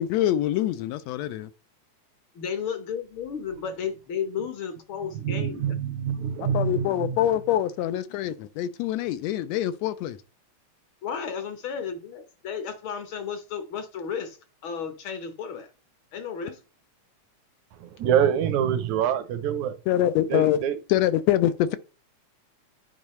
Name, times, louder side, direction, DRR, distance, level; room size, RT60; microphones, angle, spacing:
voice 1, 0.0-1.5 6.5-10.2 19.9-20.6 20.9-21.8, left 12 dB, 80° left, 1.6 m, -24 dB
voice 2, 2.3-5.6 11.0-14.4 14.6-15.7 16.1-16.6, left 7 dB, 65° left, 1.3 m, -33 dB
voice 3, 5.0-7.3 17.7-19.8 20.3-20.8, right 8 dB, 75° right, 2.2 m, -26 dB
10.5 x 4.6 x 3.1 m
omnidirectional pair, 3.4 m